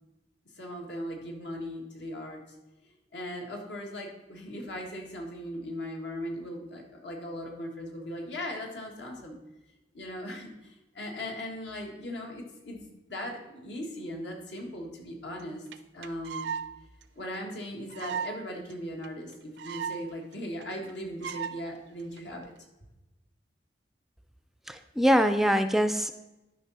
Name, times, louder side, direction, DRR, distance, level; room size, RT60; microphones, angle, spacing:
voice 1, 0.5-2.4 3.1-9.4 9.9-15.7 15.9-16.5 17.1-22.5, equal, 85° left, 1 dB, 1.8 m, -38 dB
sound 1, 15.4-15.5 15.7-15.8 16.0-16.7 17.0-17.1 17.3-17.4 17.9-18.4 18.7-18.8 19.0-19.1 19.3-20.0 20.3-20.4 20.6-20.9 21.2-21.5 22.2-22.4, right 7 dB, 80° right, 0.5 m, -35 dB
voice 2, 24.7-26.1, equal, ahead, 9 dB, 0.3 m, -23 dB
11.5 x 5.2 x 4.1 m, 1.0 s
head